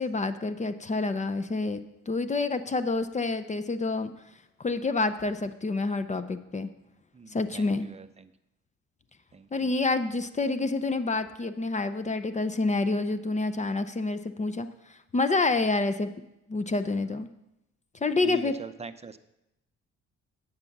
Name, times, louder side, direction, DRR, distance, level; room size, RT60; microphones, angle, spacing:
voice 1, 0.0-4.1 4.6-6.7 7.3-7.9 9.5-14.7 15.1-16.1 16.5-17.3 18.0-18.5, left 3 dB, 25° left, 11 dB, 0.6 m, -28 dB
voice 2, 7.1-8.3 9.3-9.7 16.9-17.3 18.2-19.2, right 4 dB, 20° right, 10 dB, 0.6 m, -42 dB
9.5 x 8.0 x 6.0 m, 0.88 s
cardioid pair, 90°, 30 cm